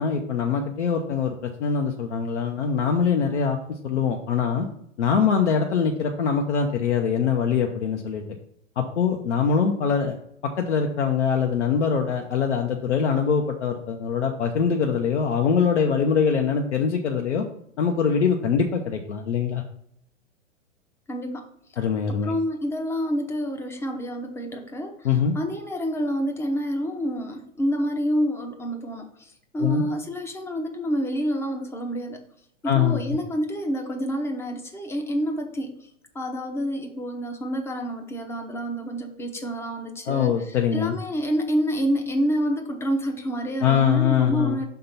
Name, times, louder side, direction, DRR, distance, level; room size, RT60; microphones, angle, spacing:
voice 1, 0.0-3.6 3.8-4.7 5.0-8.2 8.8-10.2 10.4-17.4 17.8-19.6 21.8-22.3 25.0-25.3 29.6-29.8 32.6-33.0 40.1-40.9 43.6-44.6, left 6 dB, 65° left, 3 dB, 0.9 m, -23 dB
voice 2, 21.1-21.5 22.2-25.1 25.3-32.2 32.6-35.9 36.1-44.6, equal, 5° left, 4 dB, 0.6 m, -28 dB
5.7 x 3.7 x 5.6 m, 0.72 s
figure-of-eight pair, 110°, 38 cm